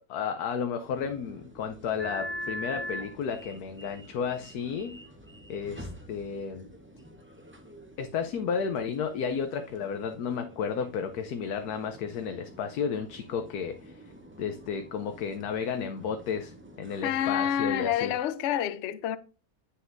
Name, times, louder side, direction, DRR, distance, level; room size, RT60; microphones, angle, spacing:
voice 1, 0.1-5.0 5.5-6.7 8.0-14.0 14.4-18.1, left 6 dB, 75° left, 1.3 m, -32 dB
sound 1, 0.8-18.2, equal, 10° right, 0.5 m, -45 dB
voice 2, 17.0-19.2, left 10 dB, 60° left, 0.8 m, -28 dB
9.2 x 6.9 x 2.6 m
omnidirectional pair, 1.7 m